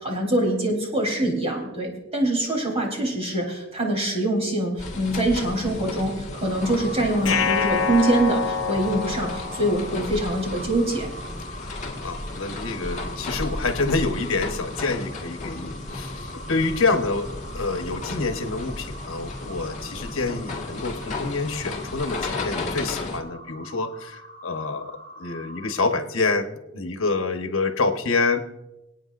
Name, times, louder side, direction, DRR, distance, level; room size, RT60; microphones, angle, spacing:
voice 1, 0.0-11.1, right 1 dB, 30° right, -1 dB, 3.6 m, -24 dB
sound 1, 4.8-23.2, left 2 dB, 35° left, 1.7 m, -34 dB
sound 2, 6.3-25.8, right 1 dB, 50° right, 4.7 m, -43 dB
sound 3, 7.3-10.3, left 6 dB, 60° left, 0.8 m, -26 dB
voice 2, 12.0-28.4, left 3 dB, 80° left, 6 dB, 1.1 m, -27 dB
25.5 x 9.0 x 2.5 m, 0.94 s
head